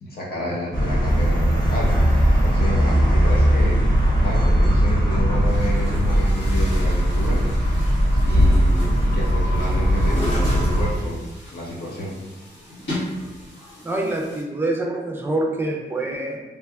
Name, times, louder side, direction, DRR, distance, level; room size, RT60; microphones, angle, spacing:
voice 1, 0.0-1.9 2.4-3.8 4.1-7.8 8.2-11.2 11.5-12.2, equal, 55° left, -5 dB, 1.0 m, -29 dB
sound 1, 0.7-10.9, equal, 20° left, 1.2 m, -19 dB
Chatter / Gurgling / Tap, 5.3-14.4, equal, 85° left, 1.4 m, -36 dB
voice 2, 13.8-16.4, right 2 dB, 10° right, 0 dB, 0.5 m, -25 dB
3.3 x 3.2 x 2.3 m, 1.1 s
wide cardioid pair, 125°, 19 cm